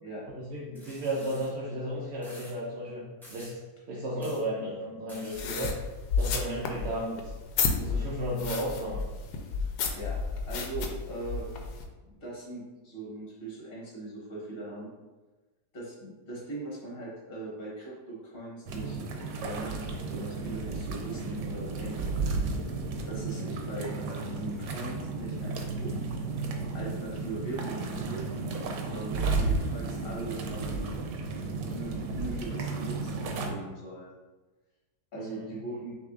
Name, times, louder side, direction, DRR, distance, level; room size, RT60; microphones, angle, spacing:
voice 1, 0.3-3.0 3.3-3.6 3.9-5.7 6.2-7.3 7.8-9.0 35.2-35.5, right 1 dB, 65° right, -5 dB, 0.6 m, -34 dB
sound 1, 0.7-1.5 2.2-2.5 3.2-3.6 4.2-4.4 5.1-5.5 6.2-6.3, equal, ahead, 0.5 m, -50 dB
sound 2, 5.4-11.8, left 5 dB, 75° left, 1.1 m, -32 dB
voice 2, 9.6-10.2 10.4-11.5 12.0-14.9 15.7-19.0 19.4-22.3 23.0-26.0 26.7-28.3 28.8-31.0 31.7-34.1 35.1-35.9, right 2 dB, 40° left, -6 dB, 1.2 m, -40 dB
sound 3, 18.7-33.5, right 3 dB, 90° right, 1.2 m, -33 dB
6.1 x 2.9 x 2.4 m, 1.2 s
omnidirectional pair, 1.8 m